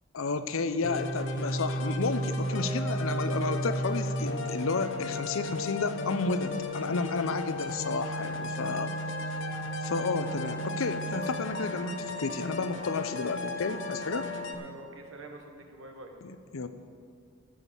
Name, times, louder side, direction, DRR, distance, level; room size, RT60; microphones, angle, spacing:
voice 1, 0.1-8.9 9.8-14.3 16.2-16.7, left 3 dB, 80° left, 11 dB, 0.7 m, -32 dB
sound 1, 0.8-14.5, left 1 dB, 60° left, 1.0 m, -34 dB
voice 2, 8.1-8.8 14.6-16.1, right 2 dB, 70° right, 3 dB, 1.5 m, -48 dB
12.5 x 7.4 x 7.2 m, 2.2 s
head